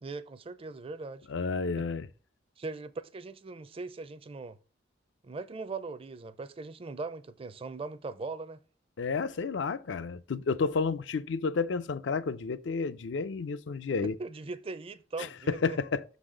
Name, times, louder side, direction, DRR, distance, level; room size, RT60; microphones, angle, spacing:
voice 1, 0.0-1.3 1.8-1.9 2.6-4.6 5.2-8.6 14.0-15.8, right 3 dB, 30° right, 0.4 m, -40 dB
voice 2, 1.3-2.1 9.0-14.2 15.2-16.0, left 4 dB, 75° left, 0.5 m, -31 dB
6.2 x 4.1 x 4.9 m
head